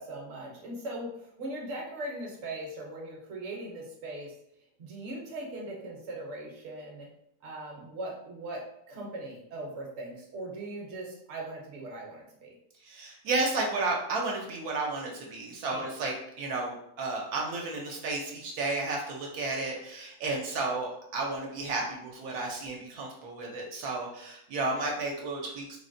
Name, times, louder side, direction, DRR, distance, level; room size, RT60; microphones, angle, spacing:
voice 1, 0.0-4.3 4.8-7.1 7.4-12.5 15.7-15.9, right 1 dB, 55° right, -2 dB, 0.9 m, -40 dB
voice 2, 12.8-25.8, right 3 dB, 75° right, -1 dB, 1.1 m, -32 dB
3.7 x 2.1 x 2.6 m, 0.75 s
omnidirectional pair, 1.6 m